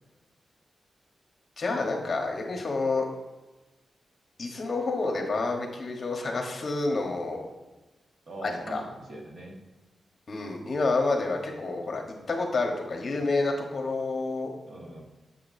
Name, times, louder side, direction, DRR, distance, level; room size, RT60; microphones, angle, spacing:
voice 1, 1.6-3.0 4.4-7.5 8.4-8.8 10.3-14.5, left 3 dB, 45° left, 2 dB, 1.3 m, -29 dB
voice 2, 8.3-9.6 14.6-15.0, right 1 dB, 55° right, 0 dB, 1.6 m, -41 dB
8.3 x 7.3 x 2.8 m, 1.1 s
wide cardioid pair, 135°, 0 cm